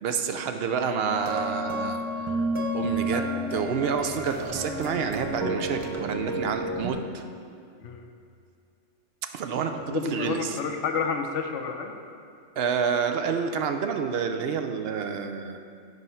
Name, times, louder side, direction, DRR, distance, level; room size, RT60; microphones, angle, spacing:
voice 1, 0.0-2.3 2.7-7.2 9.3-10.6 12.6-15.6, right 6 dB, 65° right, 6 dB, 0.7 m, -29 dB
sound 1, 1.1-6.9, right 1 dB, 30° right, 0.6 m, -31 dB
voice 2, 7.8-8.1 9.9-11.9, left 5 dB, 70° left, 4 dB, 1.0 m, -30 dB
8.1 x 5.3 x 5.6 m, 2.3 s
omnidirectional pair, 1.3 m